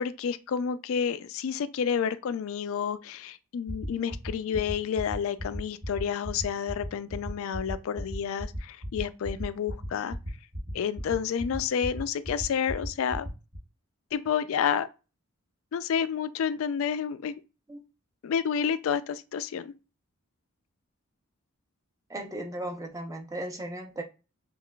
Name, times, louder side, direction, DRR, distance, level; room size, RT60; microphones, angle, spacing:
voice 1, 0.0-10.2 10.7-13.3 14.1-14.9 15.7-17.4 18.2-19.7, left 7 dB, 65° left, 0.3 m, -30 dB
sound 1, 3.7-13.6, equal, 55° right, 1.5 m, -36 dB
voice 2, 22.1-24.0, right 1 dB, 15° right, 0.5 m, -36 dB
5.6 x 2.3 x 2.2 m
head